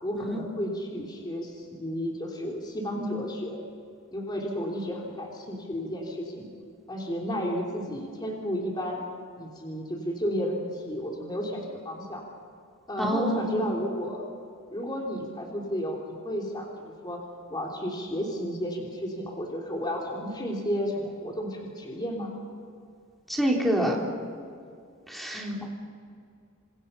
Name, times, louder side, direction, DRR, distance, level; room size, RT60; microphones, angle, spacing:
voice 1, 0.0-3.6 4.1-6.5 6.9-9.0 9.4-12.2 12.9-14.2 14.7-17.2 17.5-22.3 25.3-25.6, equal, 20° left, -2 dB, 3.3 m, -32 dB
voice 2, 13.0-13.7 23.3-24.0 25.1-25.7, equal, ahead, -1 dB, 3.8 m, -27 dB
29.5 x 26.5 x 5.6 m, 2.3 s
head